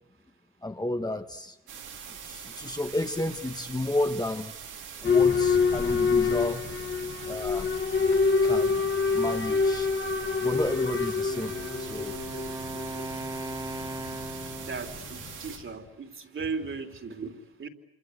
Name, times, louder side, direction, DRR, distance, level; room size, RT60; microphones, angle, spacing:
voice 1, 0.6-1.6 2.2-4.5 5.0-6.6 7.3-7.7 8.4-8.8 9.1-9.9 10.4-12.2, left 1 dB, 15° left, 5 dB, 1.4 m, -31 dB
sound 1, 1.7-15.6, right 7 dB, 85° right, 5.2 m, -43 dB
Boat Water vehicle / Alarm, 5.0-15.7, left 5 dB, 40° left, 1.8 m, -27 dB
Wind instrument woodwind instrument, 11.3-15.1, right 2 dB, 15° right, 1.9 m, -38 dB
voice 2, 14.6-17.7, right 4 dB, 40° right, 6 dB, 3.3 m, -37 dB
27.0 x 26.5 x 8.2 m, 0.84 s
cardioid pair, 90°, 30 cm